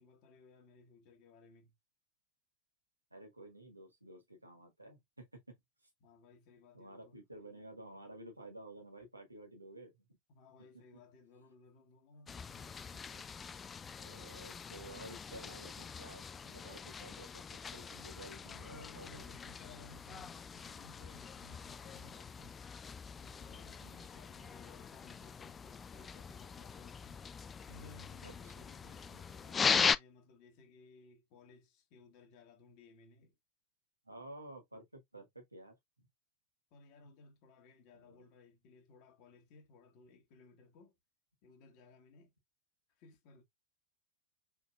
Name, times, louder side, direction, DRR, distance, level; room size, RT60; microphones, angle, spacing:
voice 1, 0.0-1.7 6.0-7.2 10.3-12.7 18.4-22.6 23.2-27.2 27.7-33.3 36.7-40.9 41.4-42.3 42.9-43.4, left 3 dB, 45° left, 1.4 m, -60 dB
voice 2, 3.1-5.6 6.7-10.1 12.5-13.2 14.0-17.4 17.7-19.3 23.8-24.2 28.2-28.7 34.0-36.1 37.9-38.3, right 1 dB, 85° right, 1.6 m, -53 dB
sound 1, 12.3-30.0, left 6 dB, 20° left, 0.3 m, -40 dB
5.0 x 3.5 x 2.4 m
figure-of-eight pair, 90°, 0 cm